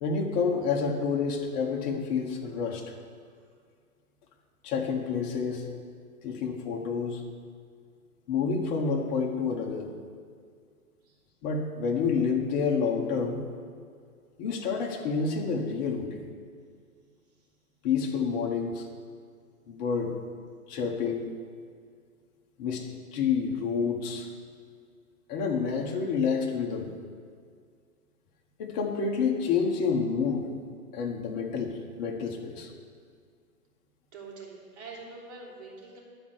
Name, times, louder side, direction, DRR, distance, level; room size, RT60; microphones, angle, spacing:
voice 1, 0.0-2.8 4.6-5.7 6.2-7.2 8.3-9.9 11.4-13.4 14.4-16.2 17.8-18.9 19.7-20.1 20.7-21.3 22.6-24.3 25.3-26.9 28.6-30.5 30.9-32.7, left 5 dB, 30° left, 0 dB, 1.1 m, -28 dB
voice 2, 34.1-36.0, right 3 dB, 45° right, -3 dB, 3.0 m, -44 dB
11.0 x 4.5 x 8.0 m, 2.1 s
figure-of-eight pair, 125°, 45 cm